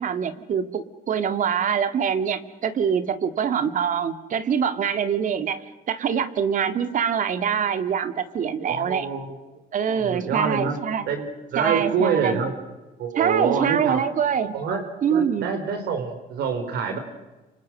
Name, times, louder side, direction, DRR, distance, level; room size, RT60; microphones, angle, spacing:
voice 1, 0.0-9.1 9.7-11.1 11.6-12.4 13.2-14.5 15.0-15.5, right 7 dB, 50° right, 10 dB, 2.2 m, -24 dB
voice 2, 8.7-9.3 9.9-10.8 11.1-12.5 13.0-14.1 14.5-14.8 15.1-17.0, right 6 dB, 70° right, 5 dB, 4.9 m, -26 dB
29.0 x 26.5 x 6.4 m, 1.1 s
cardioid pair, 110°, 17 cm